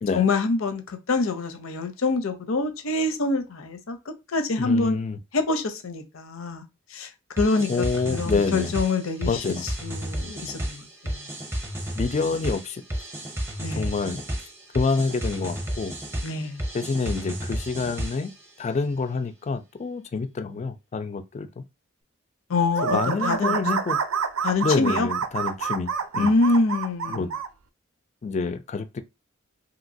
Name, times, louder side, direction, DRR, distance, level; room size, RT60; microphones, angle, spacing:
voice 1, 0.1-4.0 4.3-5.0 5.3-6.7 6.9-7.1 7.4-9.6 9.8-11.3 13.6-13.9 16.2-16.6 22.5-23.6 24.4-25.1 26.2-27.3, left 3 dB, 85° left, 0.6 m, -25 dB
voice 2, 4.6-5.2 7.7-8.7 9.3-9.6 11.9-12.8 13.7-14.2 14.7-15.9 16.7-18.3 18.6-21.6 22.8-24.0 24.6-26.3 27.1-27.3 28.2-29.0, left 4 dB, 35° left, 0.3 m, -27 dB
sound 1, 7.4-18.4, equal, 10° right, 0.6 m, -32 dB
sound 2, 22.7-27.5, right 6 dB, 90° right, 0.4 m, -27 dB
2.9 x 2.7 x 2.7 m
head